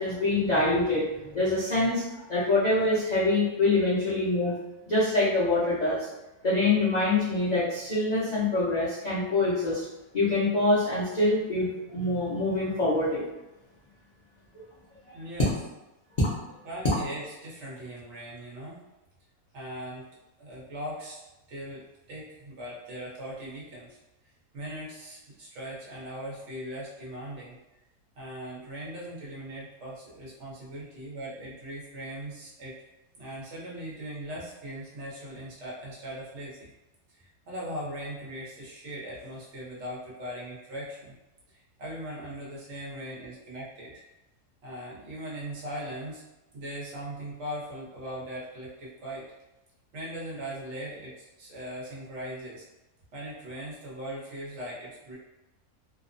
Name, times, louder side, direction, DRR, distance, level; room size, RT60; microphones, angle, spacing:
voice 1, 0.0-2.0 2.3-4.5 4.9-6.1 6.4-9.8 10.1-13.2 16.2-16.3, left 2 dB, 85° left, -10 dB, 0.3 m, -25 dB
voice 2, 15.1-15.5 16.6-18.8 19.5-20.1 20.4-21.2 21.5-24.0 24.5-27.6 28.1-32.7 33.1-36.7 37.1-41.2 41.5-44.0 44.6-46.2 46.5-49.3 49.9-52.6 53.1-55.2, equal, 55° right, -5 dB, 1.0 m, -39 dB
2.8 x 2.0 x 2.5 m, 1.0 s
omnidirectional pair, 1.7 m